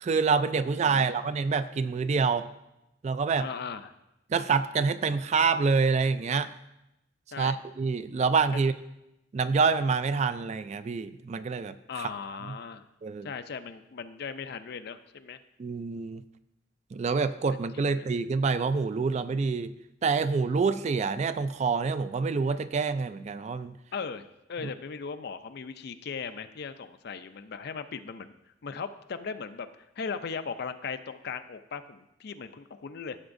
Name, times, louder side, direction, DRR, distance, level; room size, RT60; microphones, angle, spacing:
voice 1, 0.0-2.5 3.0-3.5 4.3-6.5 7.4-8.7 9.3-12.1 13.0-13.3 15.6-16.2 16.9-19.7 20.0-23.7, right 5 dB, 35° right, 13 dB, 0.3 m, -27 dB
voice 2, 0.7-1.0 3.4-3.9 7.3-7.6 11.9-12.8 13.2-15.4 17.7-18.1 23.9-24.2 24.5-28.4 28.6-29.7 30.0-33.2, left 5 dB, 55° left, 10 dB, 0.4 m, -38 dB
14.0 x 7.1 x 2.6 m, 0.89 s
head